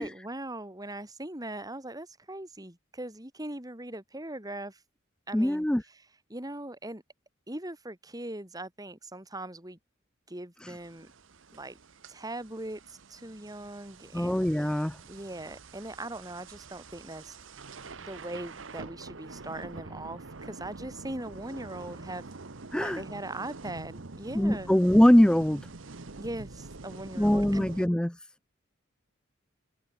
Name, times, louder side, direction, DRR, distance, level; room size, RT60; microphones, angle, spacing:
voice 1, 0.0-4.8 5.3-7.0 7.5-9.8 10.3-11.1 11.5-11.8 12.1-17.4 18.0-22.4 22.8-24.7 26.1-27.9, right 1 dB, 20° right, 3.0 m, -40 dB
voice 2, 5.3-5.8 10.6-10.7 14.1-15.0 22.7-23.0 24.3-25.6 27.2-28.1, equal, 5° left, 0.3 m, -22 dB
sound 1, 10.8-27.9, right 3 dB, 70° right, 1.2 m, -46 dB
head